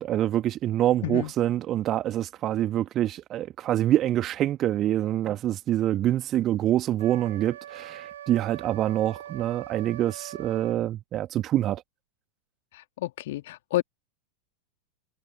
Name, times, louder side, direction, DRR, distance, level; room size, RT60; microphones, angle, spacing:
voice 1, 0.0-11.8, right 12 dB, 30° right, 2.1 m, -26 dB
voice 2, 1.0-1.3 12.7-13.8, left 16 dB, 55° left, 2.8 m, -30 dB
Wind instrument woodwind instrument, 7.0-10.8, right 11 dB, 60° right, 6.3 m, -42 dB
figure-of-eight pair, 90°, 0 cm